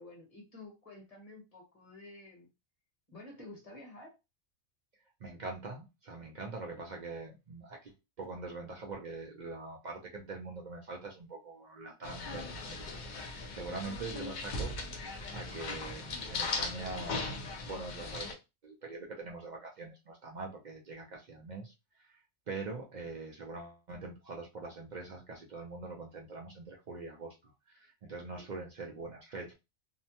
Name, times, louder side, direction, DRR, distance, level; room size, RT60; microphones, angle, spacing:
voice 1, 0.0-2.5 3.1-4.1 13.5-13.8 28.3-28.4, left 2 dB, 30° left, 0 dB, 0.9 m, -51 dB
voice 2, 5.2-29.5, right 3 dB, 65° right, 0 dB, 0.4 m, -44 dB
sound 1, 12.0-18.3, left 3 dB, 65° left, 0.4 m, -38 dB
2.7 x 2.1 x 2.8 m, 0.25 s
omnidirectional pair, 1.4 m